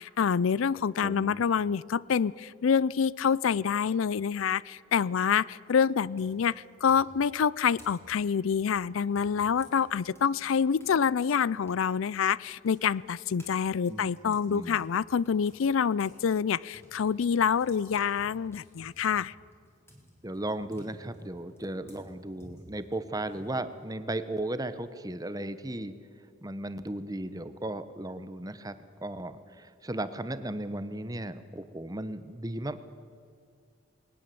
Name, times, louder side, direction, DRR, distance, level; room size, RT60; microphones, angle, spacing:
voice 1, 0.0-19.3, left 7 dB, 75° left, 22 dB, 0.4 m, -27 dB
voice 2, 1.0-1.4 13.9-14.8 20.2-25.9 26.4-28.7 29.0-32.8, right 1 dB, 15° right, 12 dB, 0.9 m, -36 dB
sound 1, 5.5-5.6 6.1-11.0 11.3-16.2 16.5-23.9, left 1 dB, 10° left, 3.7 m, -56 dB
20.0 x 19.0 x 7.7 m, 2.4 s
head